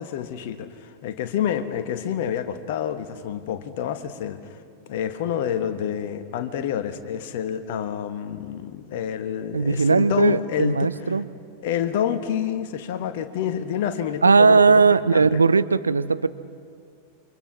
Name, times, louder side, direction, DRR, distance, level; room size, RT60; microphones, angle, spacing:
voice 1, 0.0-4.6 4.9-10.9 11.6-15.4, left 9 dB, 50° left, 10 dB, 1.3 m, -28 dB
voice 2, 9.5-11.3 14.2-16.3, right 4 dB, 75° right, 15 dB, 0.5 m, -18 dB
28.5 x 24.5 x 6.1 m, 2.3 s
figure-of-eight pair, 90°, 0 cm